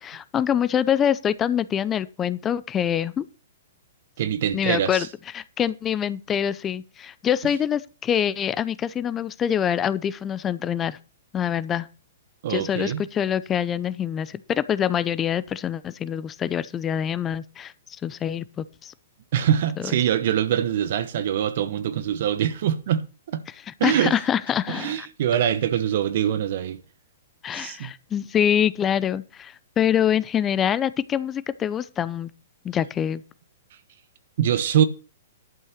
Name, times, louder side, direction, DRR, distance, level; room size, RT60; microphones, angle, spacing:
voice 1, 0.0-3.3 4.5-5.1 5.3-11.0 11.3-11.9 12.5-18.9 19.8-20.0 23.7-25.1 27.4-32.3 32.6-33.2, left 9 dB, 20° left, 0.6 m, -25 dB
voice 2, 4.2-5.1 12.4-13.0 19.3-23.4 23.8-24.1 24.7-26.8 27.5-27.9 34.4-34.8, right 10 dB, 60° right, 1.0 m, -24 dB
11.5 x 5.5 x 6.6 m
hypercardioid pair, 120°, 0 cm